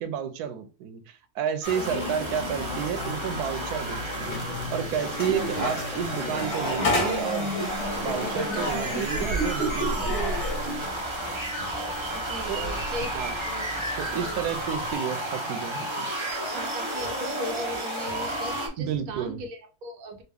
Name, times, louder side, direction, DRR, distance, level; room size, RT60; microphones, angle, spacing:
voice 1, 0.0-7.7 8.0-10.4 12.5-12.6 13.1-13.3 14.0-16.1 18.8-19.4, right 8 dB, 90° right, 1.1 m, -31 dB
sound 1, 1.6-18.7, right 1 dB, 25° right, 0.8 m, -32 dB
voice 2, 1.7-2.0 11.6-11.7 12.1-13.6 14.2-14.6 16.5-20.2, equal, 70° right, 1.1 m, -38 dB
sound 2, 1.9-7.0, left 3 dB, 50° left, 0.9 m, -37 dB
sound 3, 4.2-15.0, left 1 dB, 90° left, 1.7 m, -32 dB
4.3 x 2.0 x 3.4 m
omnidirectional pair, 1.6 m